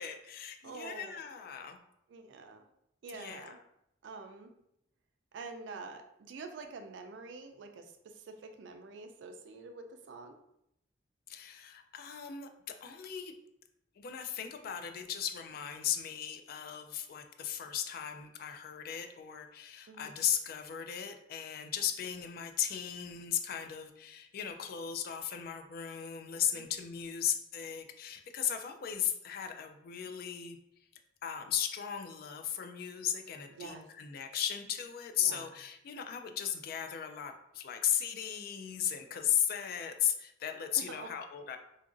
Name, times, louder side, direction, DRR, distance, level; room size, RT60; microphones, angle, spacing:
voice 1, 0.0-1.8 3.1-3.6 11.3-12.5 12.8-13.3 14.0-30.6 31.2-41.6, left 9 dB, 55° left, 6 dB, 0.3 m, -36 dB
voice 2, 0.6-1.2 2.1-2.7 3.0-3.6 4.0-4.5 5.3-6.0 6.3-10.3 19.9-20.2 26.5-26.7 33.5-33.9 35.2-35.5 40.8-41.1, right 4 dB, 80° right, 6 dB, 0.4 m, -46 dB
2.8 x 2.4 x 2.5 m, 0.79 s
head